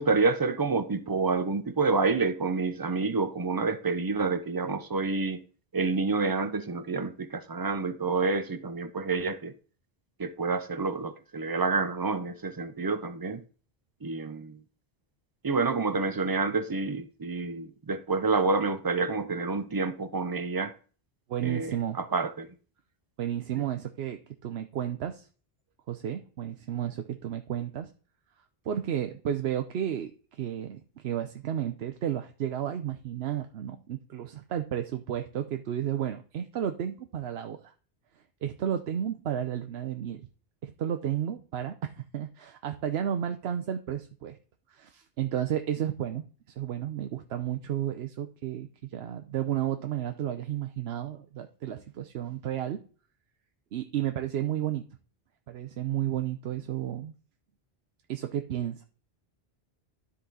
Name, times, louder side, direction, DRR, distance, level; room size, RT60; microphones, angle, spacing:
voice 1, 0.0-5.4 5.7-9.5 10.2-13.4 14.0-14.6 15.4-20.7 21.4-22.5, right 4 dB, 30° right, 0.4 m, -28 dB
voice 2, 21.3-22.0 23.2-25.3 25.9-27.9 28.6-37.7 38.4-40.2 40.6-44.4 44.7-46.2 46.6-52.8 53.7-54.9 55.5-57.1 58.1-58.8, right 10 dB, 90° right, 0.9 m, -32 dB
12.5 x 4.2 x 3.9 m
omnidirectional pair, 1.0 m